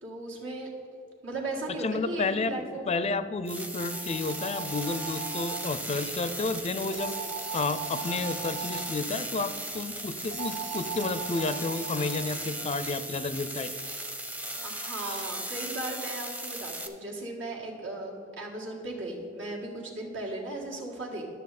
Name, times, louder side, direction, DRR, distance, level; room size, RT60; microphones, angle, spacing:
voice 1, 0.0-0.7 1.2-2.9 14.6-21.2, right 2 dB, 80° right, -2 dB, 1.9 m, -36 dB
voice 2, 1.8-2.5 2.9-7.2 7.5-13.7, left 3 dB, 35° left, 13 dB, 0.4 m, -31 dB
sound 1, 3.5-16.9, right 1 dB, 10° right, 0.6 m, -37 dB
sound 2, 3.7-5.6 6.9-8.9 10.3-12.3, right 7 dB, 60° right, 1.8 m, -39 dB
11.5 x 6.7 x 4.2 m, 2.6 s
head